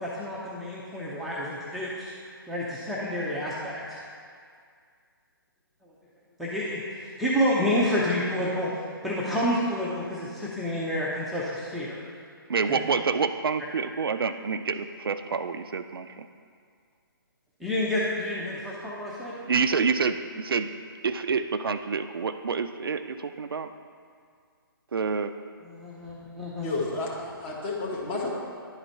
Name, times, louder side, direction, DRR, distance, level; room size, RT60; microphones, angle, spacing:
voice 1, 0.0-4.0 5.8-5.9 6.4-8.7 9.0-12.0 12.7-12.8 17.6-19.3 25.6-26.7, left 1 dB, ahead, -9 dB, 0.6 m, -29 dB
voice 2, 12.5-16.3 19.5-20.7 21.0-23.7 24.9-25.3, right 5 dB, 70° right, 10 dB, 0.4 m, -27 dB
voice 3, 26.6-28.3, left 3 dB, 30° left, -3 dB, 1.4 m, -31 dB
10.5 x 4.0 x 4.4 m, 2.2 s
figure-of-eight pair, 145°, 12 cm